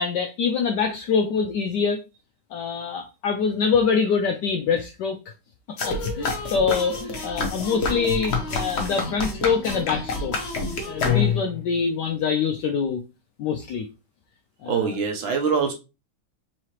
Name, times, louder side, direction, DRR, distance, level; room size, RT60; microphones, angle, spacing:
voice 1, 0.0-2.0 2.5-5.2 5.9-10.4 10.8-13.0 13.4-13.9 14.6-14.9, left 5 dB, 80° left, 5 dB, 0.9 m, -25 dB
sound 1, 5.8-11.6, left 4 dB, 55° left, 0.7 m, -27 dB
voice 2, 14.7-15.7, right 5 dB, 70° right, 3 dB, 1.5 m, -23 dB
4.7 x 3.1 x 2.9 m, 0.28 s
omnidirectional pair, 2.3 m